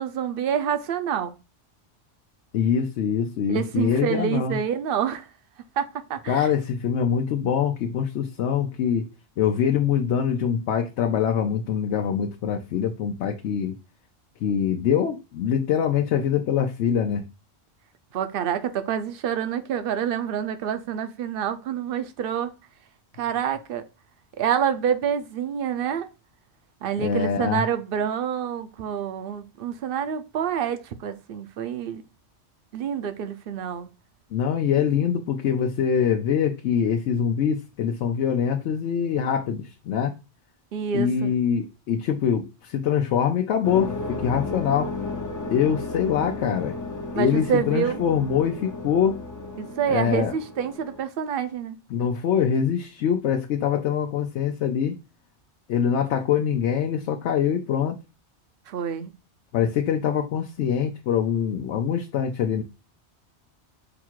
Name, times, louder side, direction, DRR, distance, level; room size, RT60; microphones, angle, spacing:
voice 1, 0.0-1.3 3.5-5.3 5.8-6.5 18.1-22.5 23.2-23.8 24.4-26.1 26.8-32.0 32.7-33.9 40.7-41.3 47.1-48.0 49.6-51.8 58.7-59.1, right 8 dB, 60° right, 0.7 m, -27 dB
voice 2, 2.5-4.6 6.3-9.1 9.4-13.8 14.4-17.3 27.0-27.6 34.3-40.1 40.9-44.9 45.5-46.7 47.1-49.2 49.9-50.3 51.9-55.0 55.7-58.0 59.5-62.6, left 8 dB, 85° left, 0.9 m, -24 dB
sound 1, 43.6-51.0, left 3 dB, 25° left, 0.4 m, -34 dB
5.0 x 2.4 x 4.4 m
omnidirectional pair, 1.1 m